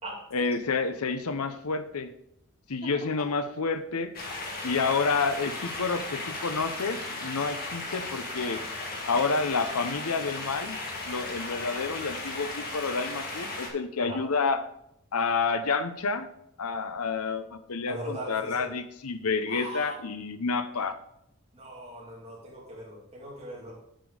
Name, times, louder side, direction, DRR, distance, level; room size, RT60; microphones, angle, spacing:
voice 1, 0.3-2.1 2.7-4.1 4.6-8.6 9.1-10.8 11.1-14.6 15.1-16.3 16.6-21.0, left 4 dB, 85° left, 10 dB, 0.7 m, -29 dB
sound 1, 4.1-13.7, left 2 dB, 40° left, 1.7 m, -36 dB
voice 2, 17.9-18.7 19.5-19.9 21.5-23.8, right 1 dB, 25° right, -4 dB, 2.7 m, -40 dB
7.5 x 7.1 x 4.9 m, 0.76 s
head